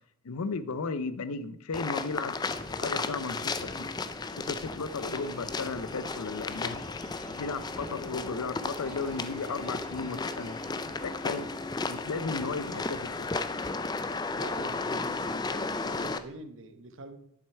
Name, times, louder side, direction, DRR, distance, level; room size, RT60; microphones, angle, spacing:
voice 1, 0.2-2.4 2.7-3.9 4.3-6.8 7.2-10.6 11.0-11.5 11.9-13.3, left 4 dB, 80° left, 0.6 m, -35 dB
sound 1, 1.7-16.2, left 3 dB, 20° left, 0.3 m, -34 dB
sound 2, 1.8-13.0, right 1 dB, 80° right, 3.0 m, -52 dB
sound 3, 2.5-16.3, equal, 5° right, 0.7 m, -53 dB
voice 2, 12.5-13.0 14.3-17.2, right 2 dB, 60° right, 0.9 m, -46 dB
11.0 x 6.5 x 4.4 m
head